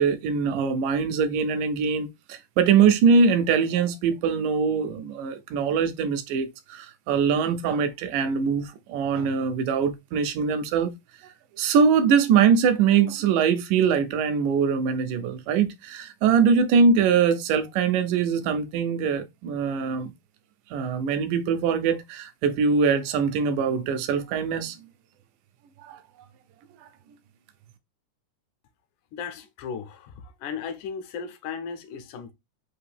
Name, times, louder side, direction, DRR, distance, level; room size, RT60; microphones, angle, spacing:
voice 1, 0.0-10.9 11.6-20.1 20.7-24.8 25.8-26.0, right 6 dB, 80° right, 2.3 m, -22 dB
voice 2, 29.1-32.3, left 6 dB, 80° left, 2.3 m, -36 dB
5.6 x 2.7 x 3.3 m
omnidirectional pair, 3.7 m